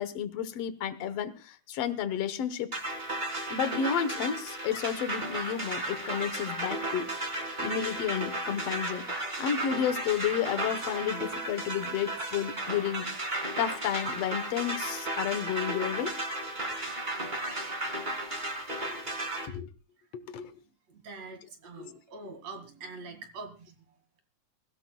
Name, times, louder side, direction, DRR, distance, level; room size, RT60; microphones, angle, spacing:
voice 1, 0.0-2.7 3.5-7.1 7.6-9.1 9.4-13.1 13.6-16.2 18.8-19.0 19.5-19.7 20.1-20.5 21.8-22.0, left 8 dB, 65° left, 12 dB, 2.0 m, -31 dB
sound 1, 2.7-19.5, right 1 dB, 20° right, 1.9 m, -34 dB
voice 2, 20.9-24.2, right 3 dB, 60° right, 6 dB, 3.3 m, -45 dB
23.0 x 16.5 x 2.3 m, 0.32 s
omnidirectional pair, 3.5 m